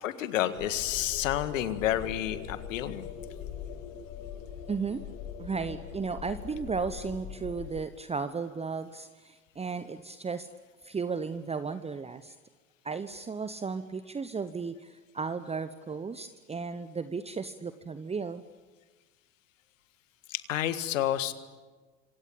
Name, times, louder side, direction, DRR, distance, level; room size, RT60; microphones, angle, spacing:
voice 1, 0.0-3.1 20.3-21.3, left 12 dB, 70° left, 12 dB, 1.9 m, -30 dB
sound 1, 0.6-7.8, left 8 dB, 55° left, 4.9 m, -41 dB
voice 2, 4.7-5.0 5.4-10.5 10.8-12.4 12.8-18.4, right 5 dB, 15° right, 12 dB, 1.0 m, -35 dB
26.5 x 26.0 x 8.8 m, 1.3 s
figure-of-eight pair, 75°, 39 cm